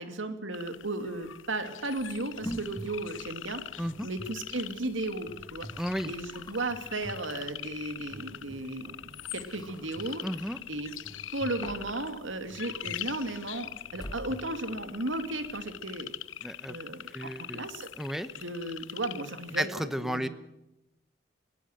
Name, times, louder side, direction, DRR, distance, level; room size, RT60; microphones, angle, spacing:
voice 1, 0.0-5.7 6.0-10.2 10.7-10.9 11.3-16.1 16.7-17.9 18.3-20.3, right 2 dB, 85° right, 9 dB, 2.5 m, -35 dB
pond frog bird cleaned, 0.5-19.7, left 11 dB, 80° left, 0.7 m, -43 dB
sound 1, 2.0-15.8, equal, 20° left, 1.9 m, -48 dB
sound 2, 2.3-15.6 19.2-19.3, equal, 25° right, 5.4 m, -51 dB
voice 2, 3.8-4.1 5.8-6.1 10.2-10.6 16.4-16.8 17.1-17.7 18.0-18.3 19.6-20.3, equal, ahead, 13 dB, 0.8 m, -33 dB
22.0 x 17.0 x 7.8 m, 0.90 s
head